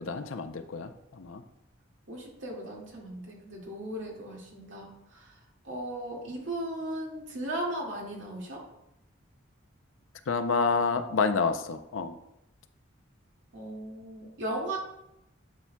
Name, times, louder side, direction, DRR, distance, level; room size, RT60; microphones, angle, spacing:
voice 1, 0.0-1.4 10.3-12.2, left 4 dB, 85° left, 9 dB, 0.5 m, -29 dB
voice 2, 2.1-5.4 5.6-8.6 13.5-14.8, right 1 dB, 75° right, -3 dB, 2.1 m, -37 dB
9.6 x 5.8 x 2.2 m, 0.85 s
head